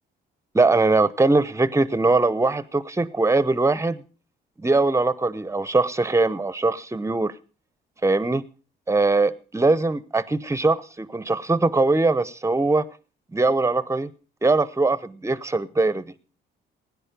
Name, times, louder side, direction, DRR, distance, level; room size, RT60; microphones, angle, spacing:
voice 1, 0.5-4.0 4.6-7.3 8.0-8.4 8.9-12.9 13.3-14.1 14.4-16.1, right 3 dB, 15° right, 0.9 m, -21 dB
17.0 x 9.9 x 5.1 m
cardioid pair, 90°, 20 cm